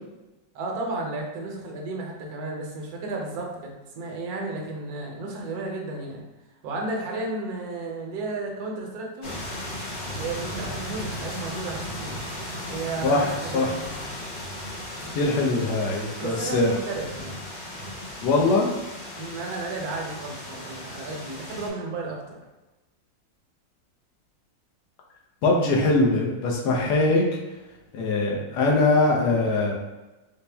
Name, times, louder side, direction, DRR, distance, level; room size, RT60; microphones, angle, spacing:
voice 1, 0.5-6.2 6.6-9.4 10.1-12.2 12.7-14.0 15.0-15.2 16.2-17.4 19.2-22.4 26.8-27.0, right 3 dB, 65° right, 0 dB, 1.1 m, -33 dB
sound 1, 9.2-21.7, left 1 dB, 45° left, 0.6 m, -36 dB
voice 2, 15.1-16.7 18.2-18.7 25.4-27.3 27.9-29.7, left 2 dB, 65° left, -1 dB, 1.2 m, -22 dB
4.2 x 2.1 x 3.3 m, 1.1 s
omnidirectional pair, 2.1 m